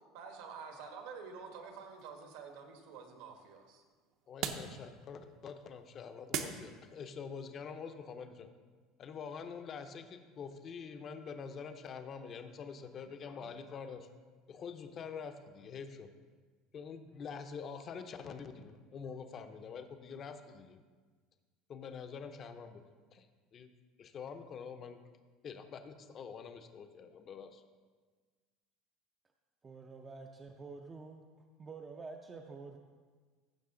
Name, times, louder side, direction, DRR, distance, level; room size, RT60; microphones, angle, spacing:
voice 1, 0.1-3.8, right 5 dB, 70° right, 4 dB, 1.4 m, -48 dB
sound 1, 1.1-7.2, right 8 dB, 50° right, 0.6 m, -45 dB
voice 2, 4.3-8.5 9.0-14.1 14.5-16.1 16.7-20.8 21.7-22.8 23.1-23.3 23.5-23.7 24.0-25.0 25.4-27.6, left 6 dB, 25° left, 8 dB, 0.6 m, -46 dB
voice 3, 29.6-31.2 31.6-32.8, right 4 dB, 15° right, 2 dB, 0.4 m, -48 dB
15.0 x 6.3 x 3.8 m, 1.5 s
cardioid pair, 175°, 0 cm